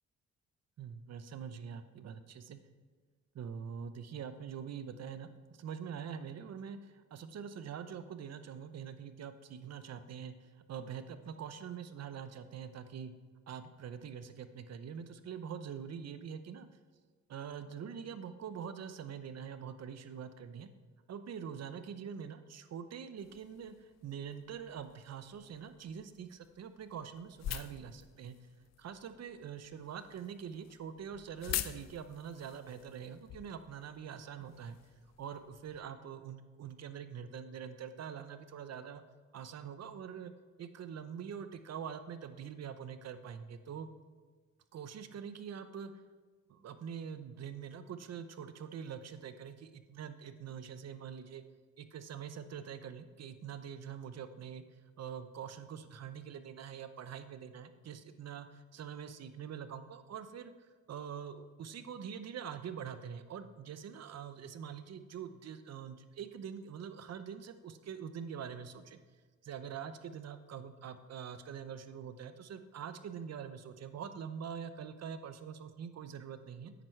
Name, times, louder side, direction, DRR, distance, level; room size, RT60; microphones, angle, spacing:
voice 1, 0.8-2.6 3.3-13.1 13.5-16.7 17.3-20.7 21.1-28.3 28.8-34.8 35.2-39.0 39.3-40.3 40.6-43.9 44.7-45.9 46.5-51.4 51.8-54.6 55.0-69.0 69.4-76.7, right 7 dB, 55° right, 11 dB, 0.9 m, -44 dB
sound 1, 23.2-35.8, left 11 dB, 60° left, 0.6 m, -47 dB
9.7 x 9.2 x 4.6 m, 1.4 s
cardioid pair, 90°, 30 cm